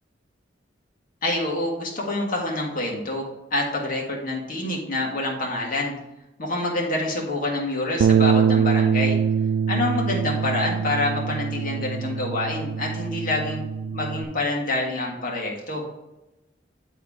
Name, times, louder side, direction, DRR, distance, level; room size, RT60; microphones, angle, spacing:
voice 1, 1.2-3.2 3.5-5.9 6.4-9.2 9.7-13.6 13.9-15.8, left 2 dB, 50° left, -1 dB, 1.7 m, -27 dB
Bass guitar, 8.0-14.3, right 7 dB, 90° right, 0.3 m, -23 dB
9.9 x 3.6 x 3.6 m, 0.95 s
head